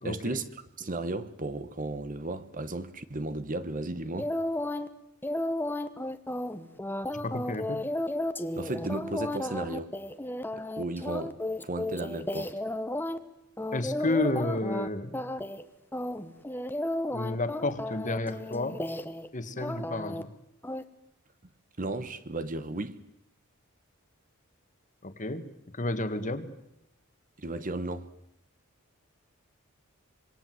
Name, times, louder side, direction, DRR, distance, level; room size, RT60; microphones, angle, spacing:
voice 1, 0.0-4.3 8.6-9.9 10.5-11.4 11.6-12.5 21.8-23.0 27.4-28.1, right 2 dB, 40° right, 1.2 m, -34 dB
sound 1, 4.2-4.9 5.2-13.2 13.6-14.9 15.1-15.6 15.9-19.3 19.6-20.2 20.6-20.8, left 1 dB, 10° left, 1.1 m, -33 dB
voice 2, 7.2-7.8 13.7-15.2 17.1-18.8 19.3-20.3 25.0-25.4 25.7-26.5, left 2 dB, 35° left, 1.8 m, -31 dB
26.0 x 21.5 x 7.8 m
head